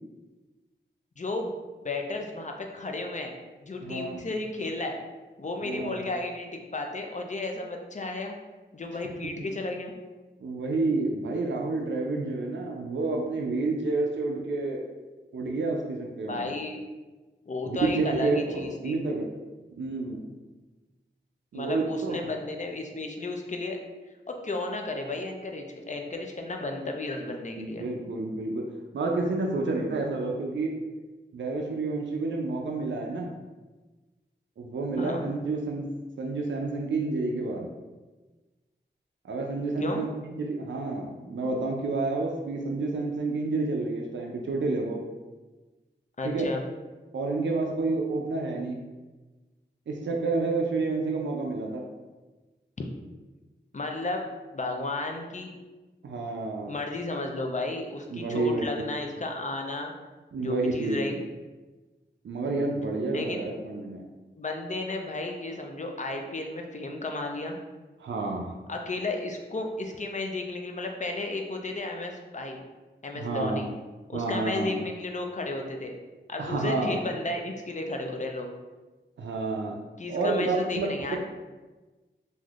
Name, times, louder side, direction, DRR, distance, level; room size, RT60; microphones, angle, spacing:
voice 1, 1.2-1.6 1.8-3.3 3.6-5.0 5.4-8.4 8.7-9.9 16.2-16.8 17.5-19.0 21.5-23.8 24.3-27.9 35.0-35.3 39.8-40.0 46.2-46.6 53.7-54.2 54.5-55.5 56.7-59.9 60.4-61.2 63.1-63.5 64.4-67.6 68.7-72.6 73.0-73.7 74.1-75.9 76.3-78.5 80.0-81.2, left 2 dB, 40° left, 2 dB, 0.4 m, -33 dB
voice 2, 3.8-4.1 5.6-6.0 10.4-14.8 15.3-16.5 17.7-18.4 18.8-19.3 19.8-20.3 21.5-22.2 27.6-28.6 28.9-30.7 31.3-33.3 34.6-35.9 36.2-37.7 39.2-45.0 46.2-46.4 47.1-48.8 49.9-51.8 56.0-56.7 58.1-58.7 60.3-61.0 62.2-64.0 68.0-68.5 73.1-73.7 74.1-74.8 76.4-77.0 79.2-79.8 80.1-80.9, right 3 dB, 75° right, 0 dB, 0.4 m, -29 dB
3.4 x 2.6 x 2.4 m, 1.2 s
wide cardioid pair, 60°, 20 cm